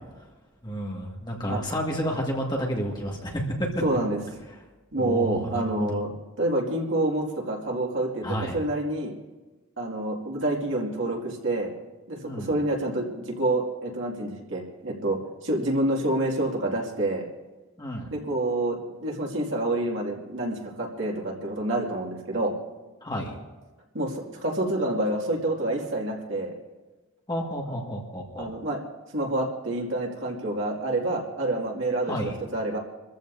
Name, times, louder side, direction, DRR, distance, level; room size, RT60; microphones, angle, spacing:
voice 1, 0.6-3.7 4.9-6.0 8.2-8.6 12.2-12.5 17.8-18.2 23.0-23.4 27.3-28.5 32.1-32.3, equal, 20° left, -1 dB, 1.9 m, -31 dB
voice 2, 3.8-4.2 4.9-6.1 6.4-9.1 9.8-11.7 12.1-17.3 18.1-22.5 23.9-26.5 28.4-28.8 29.1-32.2 32.5-32.8, right 1 dB, 65° right, -2 dB, 2.3 m, -28 dB
27.0 x 14.5 x 2.7 m, 1.2 s
head